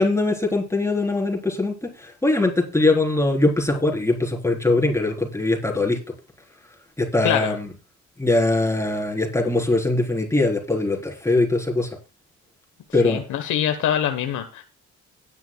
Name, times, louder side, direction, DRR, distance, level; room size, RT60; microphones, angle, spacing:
voice 1, 0.0-1.7 2.0-6.0 7.0-7.7 8.2-11.9 12.9-13.2, left 2 dB, 10° left, 0 dB, 4.0 m, -21 dB
voice 2, 7.2-7.5 13.0-14.6, left 10 dB, 80° left, 6 dB, 1.2 m, -24 dB
17.0 x 10.0 x 2.3 m, 0.29 s
cardioid pair, 90°, 30 cm